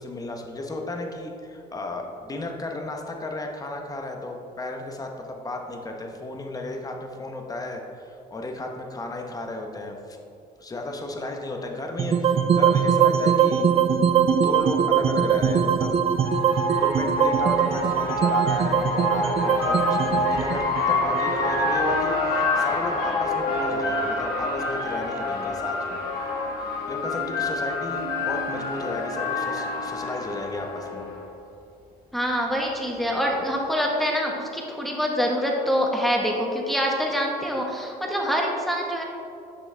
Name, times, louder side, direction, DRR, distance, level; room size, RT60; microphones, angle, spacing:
voice 1, 0.0-10.2 10.6-13.7 14.3-15.9 16.5-26.0 26.9-31.1, left 2 dB, 20° left, 3 dB, 0.9 m, -34 dB
sound 1, 12.0-22.2, right 7 dB, 35° right, 0.4 m, -22 dB
sound 2, 14.1-14.2 15.6-31.2, left 2 dB, 65° left, 1.9 m, -27 dB
voice 2, 32.1-39.0, equal, ahead, -1 dB, 1.3 m, -25 dB
9.5 x 6.0 x 3.4 m, 2.6 s
cardioid pair, 110°, 17 cm